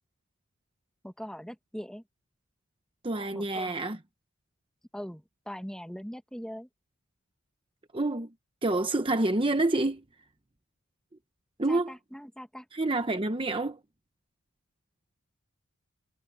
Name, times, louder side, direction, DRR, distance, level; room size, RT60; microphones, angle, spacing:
voice 1, 1.0-2.0 3.3-3.7 4.9-6.7 11.7-12.6, equal, 5° left, 1.5 m, -41 dB
voice 2, 3.0-4.0 7.9-8.3 8.6-10.0 11.6-11.9 12.7-13.8, right 2 dB, 25° right, 0.9 m, -27 dB
head